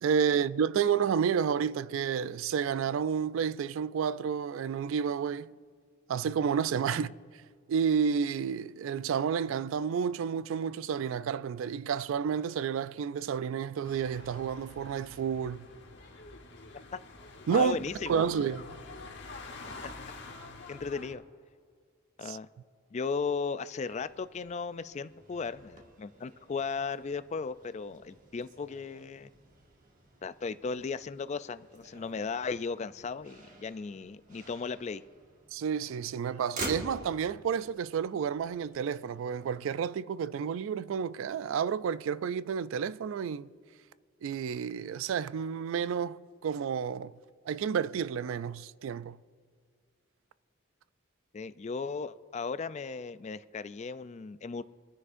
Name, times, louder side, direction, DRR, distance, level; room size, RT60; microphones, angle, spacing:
voice 1, 0.0-5.5 6.1-7.1 7.7-15.7 17.5-17.8 18.1-18.7 22.2-22.4 35.5-43.5 44.2-47.1 47.5-49.2, right 7 dB, 70° right, 0.3 m, -30 dB
sound 1, 13.8-21.1, left 3 dB, 60° left, 1.2 m, -47 dB
voice 2, 17.5-18.2 20.7-21.2 22.2-22.5 22.9-29.3 30.2-35.0 51.3-54.6, left 5 dB, 35° left, 0.3 m, -36 dB
Motor vehicle (road), 23.8-39.6, right 2 dB, 40° right, 1.6 m, -48 dB
24.5 x 9.7 x 2.6 m
head